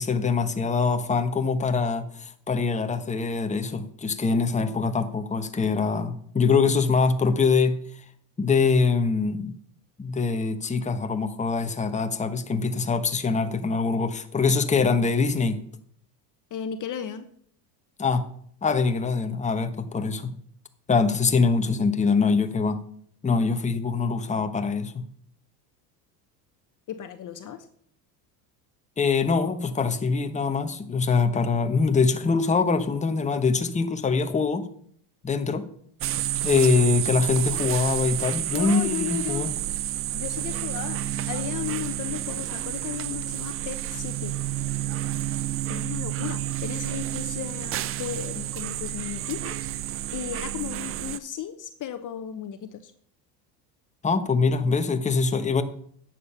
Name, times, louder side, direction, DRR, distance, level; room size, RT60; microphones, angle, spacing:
voice 1, 0.0-7.8 8.4-9.5 10.0-15.6 18.0-18.3 18.6-20.3 20.9-22.8 23.2-25.1 29.0-34.7 35.2-35.7 36.4-39.5 54.0-55.6, left 4 dB, 15° left, 7 dB, 1.1 m, -24 dB
voice 2, 16.5-17.3 26.9-27.7 38.5-39.6 40.1-44.3 45.7-52.9, left 10 dB, 40° left, 9 dB, 1.0 m, -35 dB
sound 1, 36.0-51.2, right 13 dB, 30° right, 0.4 m, -30 dB
11.0 x 7.8 x 5.8 m, 0.63 s
supercardioid pair, 100°, 49 cm